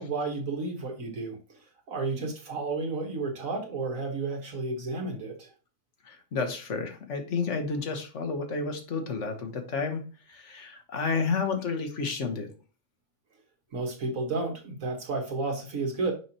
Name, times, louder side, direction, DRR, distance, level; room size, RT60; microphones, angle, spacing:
voice 1, 0.0-1.6 1.9-5.5 13.7-16.1, right 3 dB, 80° right, 3 dB, 2.0 m, -32 dB
voice 2, 6.0-10.0 10.3-12.5, left 4 dB, 60° left, 5 dB, 1.4 m, -31 dB
6.3 x 5.6 x 2.9 m, 0.34 s
omnidirectional pair, 1.4 m